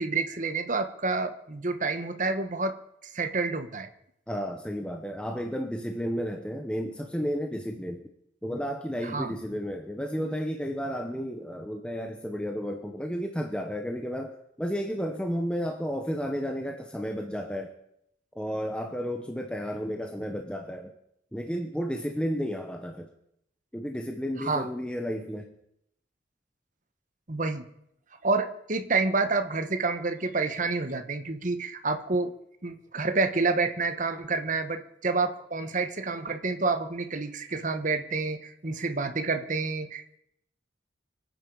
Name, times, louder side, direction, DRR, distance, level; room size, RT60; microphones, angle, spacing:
voice 1, 0.0-2.7 3.1-3.9 9.1-9.3 24.4-24.7 27.3-27.6 28.2-32.3 32.6-40.0, right 3 dB, 40° right, 8 dB, 1.2 m, -28 dB
voice 2, 4.3-8.0 8.4-17.7 18.4-20.9 21.3-23.1 23.7-25.5, equal, 5° left, 4 dB, 0.9 m, -32 dB
25.0 x 9.2 x 5.4 m, 0.75 s
head